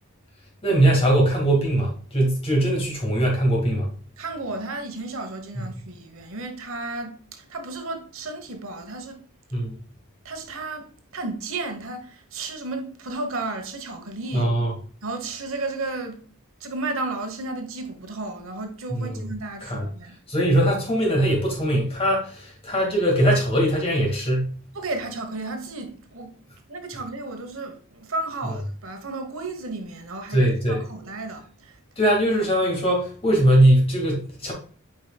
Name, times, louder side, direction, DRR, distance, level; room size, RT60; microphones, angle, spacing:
voice 1, 0.6-3.9 9.5-9.8 14.3-14.7 18.9-19.2 19.6-19.9 20.3-24.5 30.3-30.8 32.0-34.5, right 1 dB, 25° left, 2.1 m, -21 dB
voice 2, 4.2-9.2 10.2-14.5 15.0-16.2 16.6-20.2 24.7-26.4 26.7-31.8, right 2 dB, 65° right, 1.2 m, -33 dB
8.3 x 4.9 x 2.3 m
head